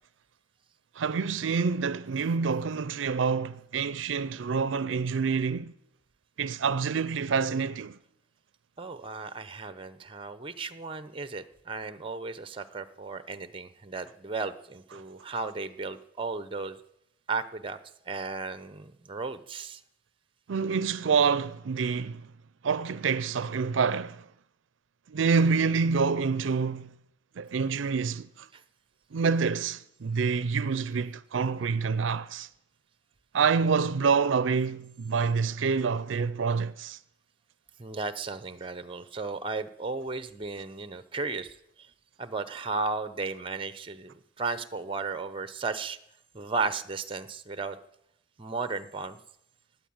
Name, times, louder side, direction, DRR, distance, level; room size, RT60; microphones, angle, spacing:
voice 1, 1.0-5.7 6.4-8.0 20.5-22.3 22.6-24.2 25.1-26.9 27.4-28.3 29.1-32.5 33.3-37.0, right 5 dB, 85° right, 0.5 m, -27 dB
voice 2, 8.8-16.8 17.3-17.8 18.1-19.8 28.5-28.6 37.8-41.6 42.2-46.0 46.3-47.8 48.4-49.2, right 4 dB, 30° right, 0.8 m, -35 dB
17.0 x 9.5 x 8.7 m
head